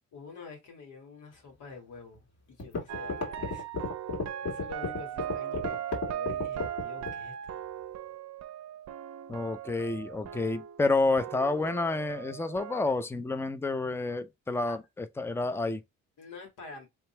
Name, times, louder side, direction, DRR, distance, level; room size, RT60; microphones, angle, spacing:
voice 1, 0.1-3.7 4.4-7.5 14.7-14.8 16.2-16.9, left 4 dB, 80° left, 2.3 m, -47 dB
sound 1, 2.1-2.2 2.6-7.2, left 4 dB, 55° left, 2.4 m, -33 dB
sound 2, 2.9-10.9 11.2-12.9, right 10 dB, 65° right, 0.6 m, -38 dB
voice 2, 9.3-15.8, left 3 dB, 10° left, 0.5 m, -29 dB
3.5 x 2.9 x 3.2 m
cardioid pair, 90°, 30 cm